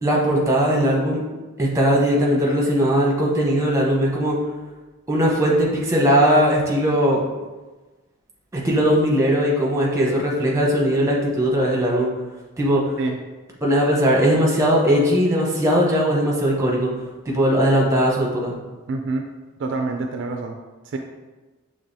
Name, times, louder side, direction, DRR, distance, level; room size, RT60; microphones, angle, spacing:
voice 1, 0.0-1.2 1.6-4.4 5.1-7.2 8.5-12.1 12.6-12.9 13.6-16.9 17.2-18.6, equal, 15° right, -3 dB, 0.8 m, -19 dB
voice 2, 18.9-19.3 19.6-20.6 20.8-21.0, right 3 dB, 55° right, 4 dB, 0.3 m, -26 dB
6.2 x 3.1 x 2.6 m, 1.2 s
head